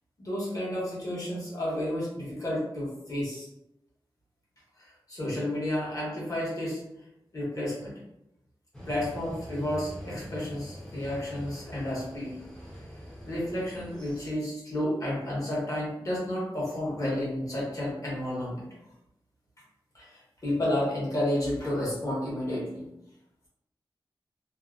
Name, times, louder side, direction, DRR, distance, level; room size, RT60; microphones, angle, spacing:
voice 1, 0.2-3.5 4.8-6.8 7.3-7.9 8.9-12.4 13.2-18.7 19.9-22.9, left 1 dB, 45° left, -6 dB, 1.2 m, -31 dB
sound 1, 8.7-14.3, equal, 10° left, 0.7 m, -44 dB
2.7 x 2.1 x 2.4 m, 0.83 s
wide cardioid pair, 95°, 8 cm